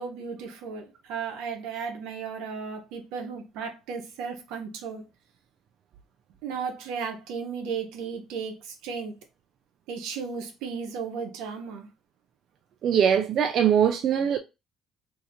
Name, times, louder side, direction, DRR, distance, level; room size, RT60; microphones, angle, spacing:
voice 1, 0.0-5.1 6.4-9.2 9.9-11.9, right 6 dB, 90° right, 0.9 m, -35 dB
voice 2, 12.8-14.4, right 8 dB, 60° right, 0.4 m, -22 dB
2.8 x 2.5 x 4.1 m
cardioid pair, 115°, 0 cm